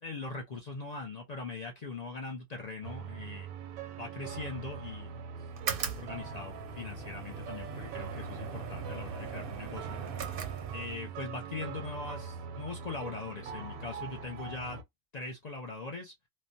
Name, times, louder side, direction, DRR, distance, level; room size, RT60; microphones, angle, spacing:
voice 1, 0.0-3.5 4.0-5.1 6.0-10.0 10.7-14.8 15.1-16.1, left 3 dB, 55° left, 0.4 m, -41 dB
sound 1, 2.8-14.8, right 6 dB, 85° right, 1.0 m, -42 dB
sound 2, 5.5-11.2, right 6 dB, 55° right, 0.7 m, -40 dB
3.1 x 2.1 x 2.6 m
omnidirectional pair, 1.4 m